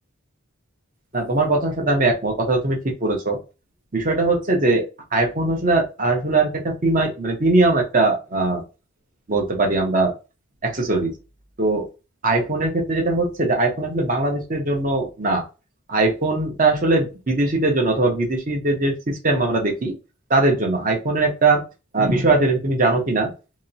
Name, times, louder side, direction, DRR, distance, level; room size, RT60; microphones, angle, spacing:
voice 1, 1.1-3.4 3.9-4.8 5.1-8.6 9.3-10.1 10.6-11.1 11.6-11.9 12.2-15.4 15.9-20.0 20.3-21.6 21.9-23.3, right 2 dB, 40° right, 2 dB, 0.8 m, -20 dB
2.9 x 2.9 x 2.7 m, 0.29 s
head